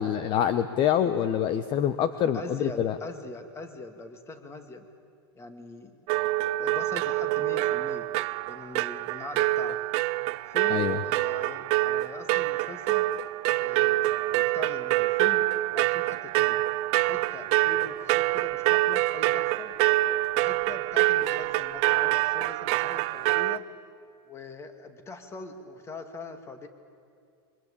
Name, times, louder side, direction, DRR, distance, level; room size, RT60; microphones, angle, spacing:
voice 1, 0.0-2.9 10.7-11.0, left 9 dB, 40° left, 12 dB, 1.0 m, -26 dB
voice 2, 2.3-4.9 5.4-6.1 6.6-8.1 8.5-9.8 10.5-13.0 13.6-16.6 17.0-19.7 20.3-23.6 24.3-26.7, left 3 dB, 20° left, 7 dB, 2.4 m, -42 dB
sound 1, 6.1-23.6, right 19 dB, 45° right, 0.6 m, -26 dB
28.0 x 24.0 x 8.6 m, 2.3 s
supercardioid pair, 135°, 14 cm